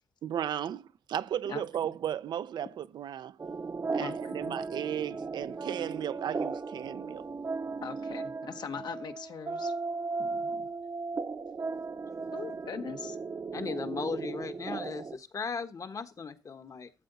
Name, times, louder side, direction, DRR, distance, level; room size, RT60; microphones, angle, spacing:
voice 1, 0.2-3.4 3.9-7.3 10.2-10.7, right 10 dB, 75° right, 0.5 m, -35 dB
voice 2, 1.5-1.9 3.9-4.6 7.8-9.7 12.3-13.2, left 6 dB, 70° left, 1.1 m, -41 dB
sound 1, 3.4-15.2, right 4 dB, 35° right, 0.7 m, -36 dB
voice 3, 13.5-16.9, left 5 dB, 45° left, 1.2 m, -37 dB
12.5 x 7.8 x 4.0 m
cardioid pair, 80°, 8 cm